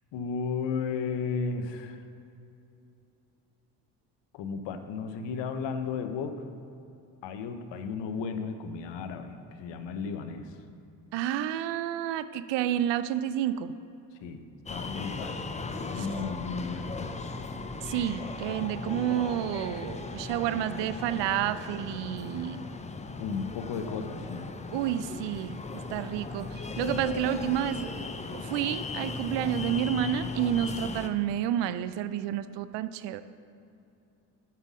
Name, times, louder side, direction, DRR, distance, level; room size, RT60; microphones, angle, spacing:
voice 1, 0.1-2.0 4.3-6.4 7.2-10.5 14.2-14.4 14.7-15.4 15.9-16.9 23.2-24.5, left 5 dB, 70° left, 8 dB, 0.8 m, -34 dB
voice 2, 11.1-13.7 16.0-16.1 17.8-22.7 24.7-25.6 25.9-28.0 28.3-33.2, right 11 dB, 70° right, 14 dB, 0.5 m, -30 dB
sound 1, 14.7-31.1, left 3 dB, 15° left, 0.5 m, -37 dB
7.6 x 5.7 x 6.1 m, 2.7 s
supercardioid pair, 70°, 45 cm